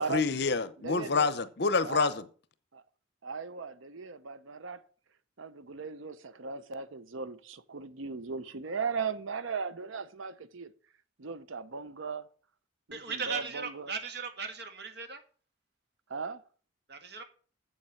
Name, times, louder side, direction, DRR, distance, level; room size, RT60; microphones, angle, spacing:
voice 1, 0.0-2.2, left 4 dB, 55° left, 0.8 m, -28 dB
voice 2, 0.8-1.3 1.8-2.2 2.7-2.8 3.2-4.8 5.4-10.7 11.2-12.3 12.9-13.9 16.1-16.4, right 5 dB, 85° right, 0.8 m, -37 dB
voice 3, 12.9-15.2 16.9-17.2, right 5 dB, 55° right, 1.6 m, -37 dB
7.9 x 7.2 x 6.5 m
head